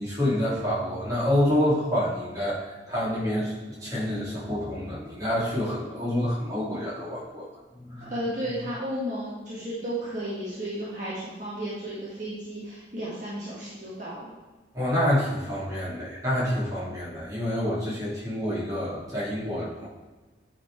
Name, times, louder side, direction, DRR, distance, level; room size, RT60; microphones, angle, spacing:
voice 1, 0.0-3.5 3.8-7.5 7.7-8.1 14.7-19.9, left 1 dB, 20° right, -8 dB, 2.8 m, -27 dB
voice 2, 8.0-14.3, right 1 dB, 40° right, -8 dB, 1.8 m, -33 dB
9.3 x 4.5 x 4.7 m, 1.3 s
head